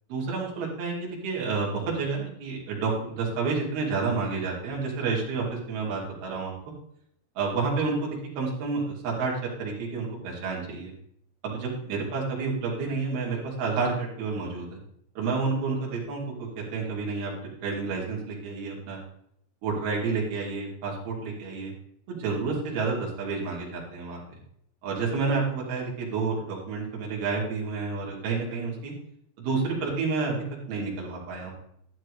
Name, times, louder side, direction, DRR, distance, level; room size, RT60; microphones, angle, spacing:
voice 1, 0.1-6.5 7.4-9.3 9.6-10.9 11.4-14.8 15.2-19.0 19.6-21.7 22.1-24.4 24.8-28.9 29.4-30.4 30.7-31.5, right 4 dB, 55° right, -3 dB, 4.5 m, -30 dB
12.0 x 12.0 x 3.2 m, 0.71 s
omnidirectional pair, 5.6 m